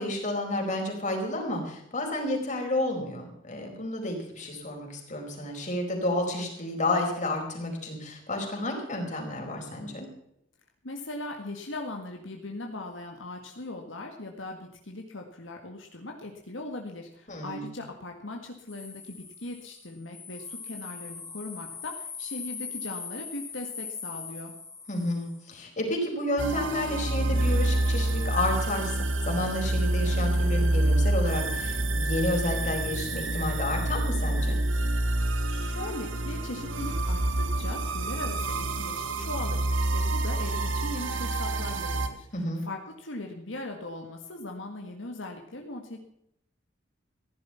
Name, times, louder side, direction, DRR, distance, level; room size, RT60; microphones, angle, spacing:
voice 1, 0.0-10.1 17.3-17.7 24.9-34.6 42.3-42.6, left 1 dB, 40° left, 1 dB, 4.5 m, -31 dB
voice 2, 10.8-24.5 35.4-39.7 39.9-46.0, left 2 dB, 80° left, 3 dB, 1.8 m, -39 dB
sound 1, 18.7-25.5, left 5 dB, 15° left, 1.4 m, -41 dB
sound 2, 26.4-42.1, right 1 dB, 80° right, 1.6 m, -27 dB
15.5 x 11.0 x 5.7 m, 0.77 s
head